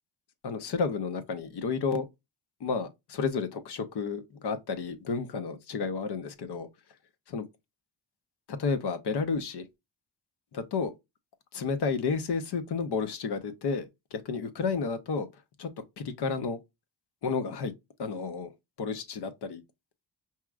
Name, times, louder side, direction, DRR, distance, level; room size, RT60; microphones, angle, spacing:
voice 1, 0.4-2.1 2.6-6.7 7.3-7.4 8.5-9.7 10.5-10.9 11.5-15.3 15.6-15.7 16.0-16.6 17.2-17.7 18.0-18.5 18.8-19.6, left 5 dB, 65° left, 0.8 m, -31 dB
4.8 x 2.9 x 2.3 m
wide cardioid pair, 145°, 42 cm